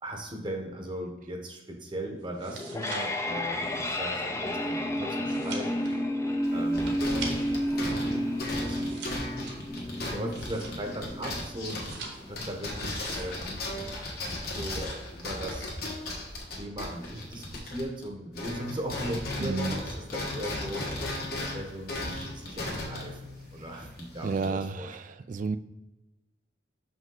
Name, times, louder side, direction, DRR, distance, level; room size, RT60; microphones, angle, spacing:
voice 1, 0.0-6.0 6.5-7.0 7.7-8.9 9.9-11.9 12.2-13.6 14.6-15.8 16.5-21.2 21.5-25.1, right 1 dB, 25° right, 2 dB, 0.9 m, -38 dB
sound 1, 2.2-7.7 8.0-11.1 11.6-12.5 12.8-13.5 13.7-14.1, right 4 dB, 65° right, 1.2 m, -44 dB
sound 2, 2.5-13.5, equal, 15° left, 0.5 m, -32 dB
sound 3, 6.4-18.1 18.3-24.5, left 2 dB, 55° left, 1.5 m, -36 dB
voice 2, 19.4-19.8 24.2-25.6, right 4 dB, 45° right, 13 dB, 0.3 m, -31 dB
6.0 x 5.4 x 3.8 m, 1.0 s
head